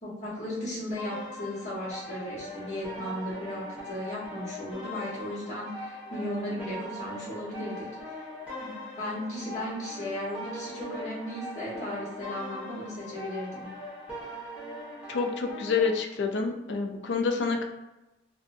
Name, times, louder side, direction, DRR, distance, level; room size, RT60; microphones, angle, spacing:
voice 1, 0.0-7.9 8.6-13.7, left 1 dB, 40° left, -7 dB, 1.1 m, -36 dB
sound 1, 1.0-16.0, left 1 dB, 5° right, 0.7 m, -41 dB
voice 2, 15.1-17.6, left 4 dB, 80° left, 4 dB, 0.4 m, -28 dB
2.6 x 2.3 x 2.6 m, 0.99 s
head